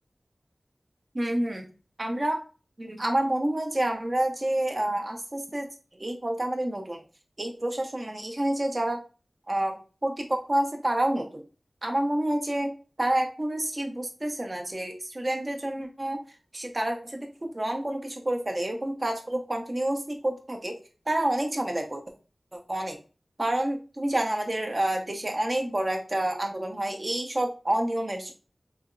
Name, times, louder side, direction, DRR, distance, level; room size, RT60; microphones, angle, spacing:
voice 1, 1.1-1.7 2.0-2.4 2.8-5.7 6.0-7.0 7.4-9.0 9.5-9.8 10.0-11.4 11.8-12.7 13.0-16.2 16.5-20.8 21.1-22.0 22.5-23.0 23.4-28.3, right 1 dB, 40° right, 3 dB, 0.7 m, -28 dB
3.3 x 2.9 x 2.5 m, 0.34 s
wide cardioid pair, 70°, 0 cm